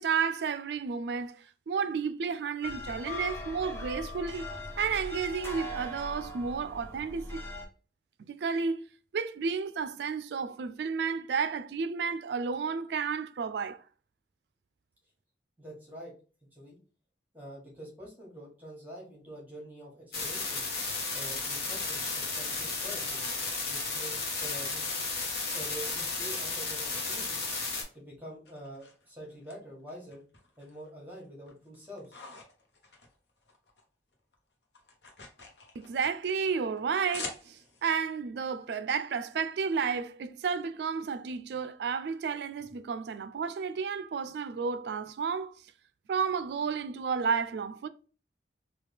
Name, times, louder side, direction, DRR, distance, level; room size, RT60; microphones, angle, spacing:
voice 1, 0.0-4.5 4.8-7.5 8.3-8.8 9.1-13.8 35.8-45.6 46.1-47.9, right 6 dB, 70° right, 0.3 m, -32 dB
sound 1, 2.6-7.7, left 1 dB, 15° left, 0.6 m, -40 dB
voice 2, 15.6-16.1 16.4-16.8 17.3-20.6 21.1-23.3 23.7-24.1 24.4-24.8 25.5-27.4 27.9-30.2 30.6-32.2, right 1 dB, 10° right, 1.2 m, -46 dB
sound 2, 20.1-27.8, left 3 dB, 60° left, 1.0 m, -33 dB
sound 3, 25.6-28.0 28.4-29.6 29.9-30.9 31.3-33.9 34.1-37.9, left 3 dB, 80° left, 0.9 m, -48 dB
3.3 x 2.3 x 3.3 m
head